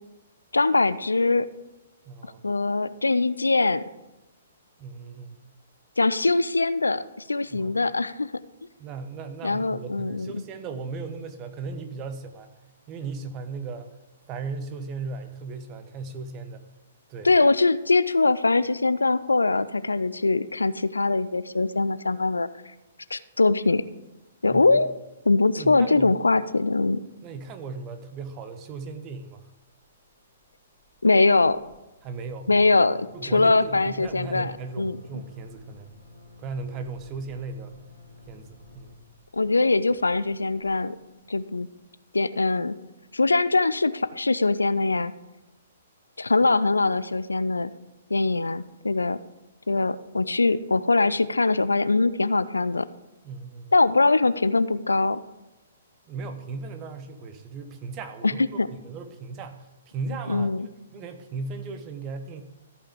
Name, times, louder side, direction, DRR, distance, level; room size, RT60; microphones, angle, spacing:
voice 1, 0.5-1.5 2.4-3.8 6.0-7.0 7.3-8.3 9.4-10.4 17.2-22.5 23.1-23.8 24.4-24.9 25.3-27.0 31.0-31.6 32.5-35.0 39.3-41.0 41.3-41.7 42.1-42.7 43.1-45.1 46.2-47.7 48.1-49.2 49.7-52.9 53.7-55.2 58.2-58.3 58.6-58.7 60.3-60.7, left 3 dB, 75° left, 15 dB, 0.4 m, -22 dB
voice 2, 2.1-2.4 4.8-5.4 7.5-7.8 8.8-12.5 12.9-13.9 14.3-16.6 17.1-17.3 24.5-24.8 25.5-26.1 27.2-29.4 32.0-32.5 33.1-35.9 36.4-37.7 38.3-38.9 53.2-53.7 56.1-58.4 58.7-59.7 59.9-60.6 60.9-62.4, right 4 dB, 25° right, 8 dB, 1.0 m, -37 dB
sound 1, 29.8-30.1 30.4-30.5 30.7-41.4, left 2 dB, 80° right, 2.5 m, -52 dB
14.0 x 5.7 x 5.2 m, 0.99 s
figure-of-eight pair, 120°, 0 cm